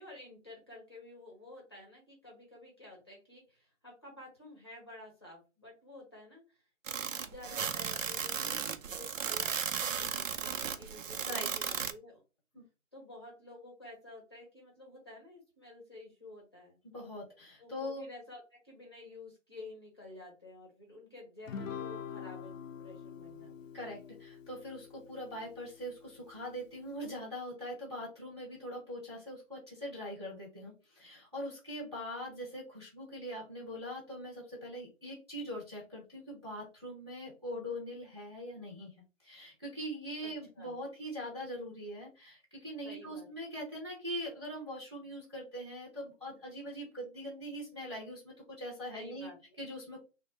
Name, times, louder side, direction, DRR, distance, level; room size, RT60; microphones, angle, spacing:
voice 1, 0.0-6.6 6.9-12.2 12.9-16.8 17.6-23.7 40.2-40.7 42.8-43.3 48.9-49.6, left 2 dB, 20° left, -1 dB, 0.7 m, -51 dB
sound 1, 6.9-11.9, right 7 dB, 75° right, 0.5 m, -35 dB
voice 2, 11.2-11.5 12.5-12.6 16.8-18.0 23.7-38.9 39.2-49.3 49.6-50.0, equal, 20° right, -5 dB, 0.6 m, -42 dB
Guitar, 21.5-26.1, left 7 dB, 75° left, 0.5 m, -45 dB
3.0 x 2.0 x 3.0 m, 0.31 s
hypercardioid pair, 170°, 39 cm